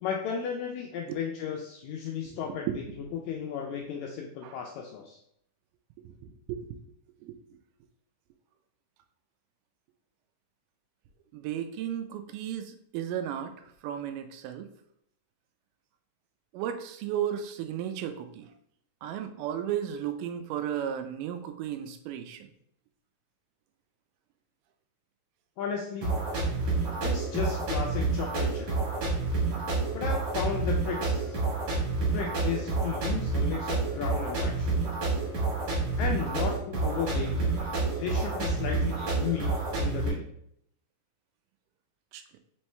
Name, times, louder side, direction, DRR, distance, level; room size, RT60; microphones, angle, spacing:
voice 1, 0.0-2.8 3.2-5.2 25.6-26.1 27.0-28.7 29.9-31.4 32.1-34.9 36.0-37.5 38.0-40.2, left 7 dB, 85° left, 0 dB, 1.6 m, -34 dB
voice 2, 2.3-2.8 4.4-4.6 6.0-6.7 7.2-7.4 11.3-14.7 16.5-18.5 19.0-22.5 42.1-42.2, right 10 dB, 85° right, 7 dB, 2.1 m, -34 dB
sound 1, 26.0-40.1, right 3 dB, 60° right, 2.4 m, -29 dB
5.4 x 3.0 x 3.2 m, 0.70 s
omnidirectional pair, 3.7 m